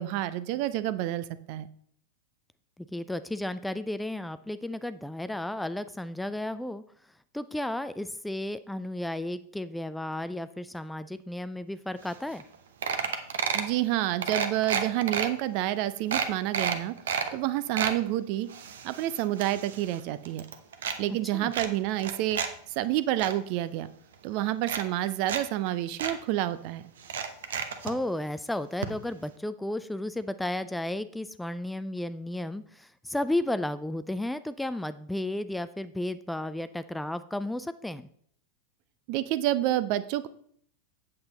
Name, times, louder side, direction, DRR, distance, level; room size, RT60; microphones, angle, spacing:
voice 1, 0.0-1.7 13.5-16.9 17.3-18.5 18.8-20.4 21.0-22.4 22.8-23.9 24.2-26.9 39.1-40.3, right 14 dB, 45° right, 14 dB, 0.6 m, -28 dB
voice 2, 2.9-6.8 7.3-12.4 21.3-21.5 27.8-38.1, left 1 dB, 5° left, 13 dB, 0.4 m, -33 dB
sound 1, 12.1-12.2 12.4-12.6 12.8-13.7 14.2-15.3 15.7-15.8 16.1-17.3 17.6-18.0 18.5-20.0 20.3-21.0 21.5-22.5 22.8-23.3 24.1-24.2 24.6-25.4 25.7-25.8 26.0-26.2 27.0-27.9 28.8-28.9 29.2-29.3, right 7 dB, 60° right, 0.9 m, -31 dB
8.7 x 7.6 x 4.1 m, 0.62 s
figure-of-eight pair, 90°, 0 cm